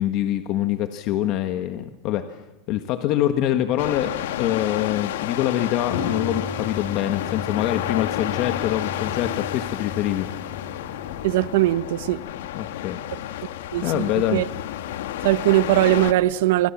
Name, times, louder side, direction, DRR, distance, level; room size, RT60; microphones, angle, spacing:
voice 1, 0.0-2.4 2.7-10.3 12.5-13.0 13.4-13.5 13.8-14.4, left 12 dB, 45° left, 1.5 m, -25 dB
sound 1, 3.8-16.1, left 12 dB, 85° left, 1.6 m, -31 dB
sound 2, 5.8-11.7, left 6 dB, 60° left, 5.6 m, -34 dB
voice 2, 11.2-12.2 13.7-14.4 15.2-16.7, right 16 dB, 75° right, 1.1 m, -20 dB
28.0 x 25.0 x 7.4 m
supercardioid pair, 160°, 0 cm